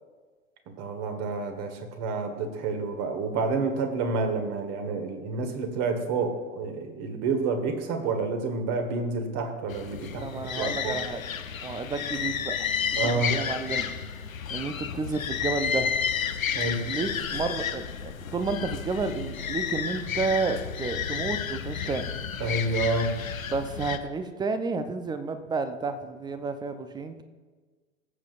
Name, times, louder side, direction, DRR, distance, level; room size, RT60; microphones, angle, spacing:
voice 1, 0.7-10.3 10.6-11.0 13.0-13.4 16.5-16.8 22.4-23.1, right 3 dB, 40° right, 6 dB, 1.6 m, -29 dB
sound 1, 9.7-24.0, left 7 dB, 80° left, 0.7 m, -31 dB
voice 2, 10.2-11.2 11.6-13.9 14.5-16.0 16.8-22.1 23.5-27.2, right 4 dB, 10° right, 9 dB, 0.5 m, -31 dB
19.5 x 7.5 x 2.5 m, 1.4 s
figure-of-eight pair, 95°, 40 cm